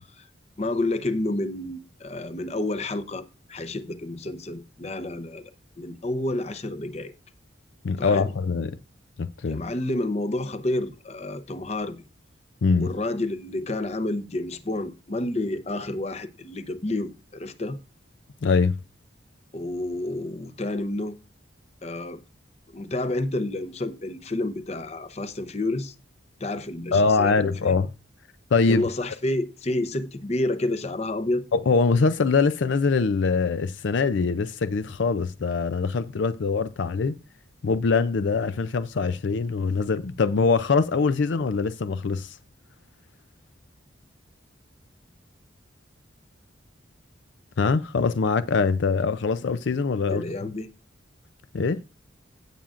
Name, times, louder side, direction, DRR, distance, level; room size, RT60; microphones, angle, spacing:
voice 1, 0.6-5.4 5.8-7.1 8.0-8.3 9.4-12.0 12.8-17.8 19.5-21.2 21.8-22.2 22.7-25.9 26.4-27.7 28.7-31.4 50.1-50.7, left 2 dB, 35° left, 0.7 m, -29 dB
voice 2, 7.8-8.7 9.2-9.6 12.6-12.9 18.4-18.8 26.9-27.9 28.5-28.8 31.5-37.2 37.6-42.4 47.6-50.5 51.5-51.8, left 4 dB, 65° left, 0.5 m, -23 dB
16.5 x 7.1 x 2.5 m
head